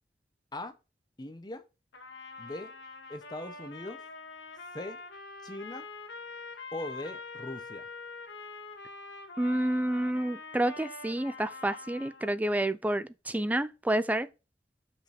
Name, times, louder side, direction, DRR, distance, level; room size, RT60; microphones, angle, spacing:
voice 1, 1.2-1.6 2.4-2.7 3.1-4.0 4.7-5.0 5.4-5.9 6.7-7.9, left 1 dB, 25° left, 0.9 m, -40 dB
Trumpet, 1.9-12.3, left 3 dB, 80° left, 1.5 m, -45 dB
voice 2, 9.4-14.3, right 1 dB, 10° right, 0.4 m, -29 dB
6.0 x 5.3 x 4.3 m
head